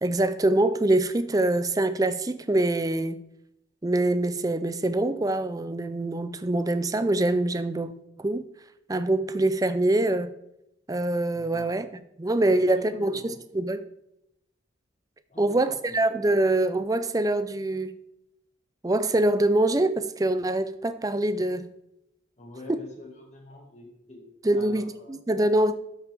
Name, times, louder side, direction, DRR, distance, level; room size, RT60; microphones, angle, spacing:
voice 1, 0.0-3.2 3.8-7.9 8.2-8.5 8.9-10.3 10.9-11.9 12.2-13.8 15.4-18.0 18.8-21.7 22.7-22.8 24.4-25.7, right 1 dB, 20° right, 0.4 m, -24 dB
voice 2, 11.3-11.8 12.4-13.4 15.3-15.8 22.4-25.1, left 1 dB, 35° left, 1.8 m, -46 dB
12.5 x 6.2 x 3.5 m
head